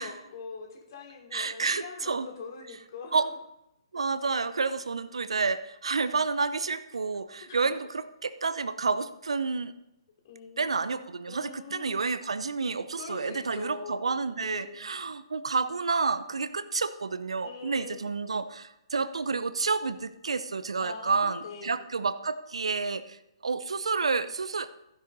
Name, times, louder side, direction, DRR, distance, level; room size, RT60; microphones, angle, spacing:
voice 1, 0.0-3.3 4.7-4.8 7.5-7.6 10.2-12.1 12.9-14.9 17.4-18.0 20.8-21.8, left 5 dB, 50° left, 2 dB, 4.0 m, -44 dB
voice 2, 1.3-2.3 3.1-3.3 3.9-9.7 10.6-24.7, right 4 dB, 75° right, 12 dB, 0.8 m, -30 dB
15.5 x 10.5 x 5.3 m, 0.87 s
figure-of-eight pair, 130°, 3 cm